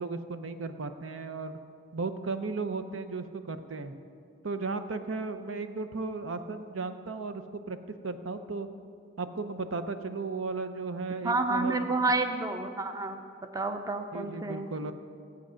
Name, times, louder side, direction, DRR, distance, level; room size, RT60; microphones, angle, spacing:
voice 1, 0.0-1.6 1.9-3.9 4.4-7.8 8.0-8.7 9.2-11.8 14.1-14.9, right 3 dB, 90° right, 9 dB, 0.7 m, -35 dB
voice 2, 11.2-13.2 13.5-14.7, right 2 dB, 20° right, 7 dB, 0.6 m, -29 dB
15.0 x 8.5 x 6.3 m, 2.4 s
head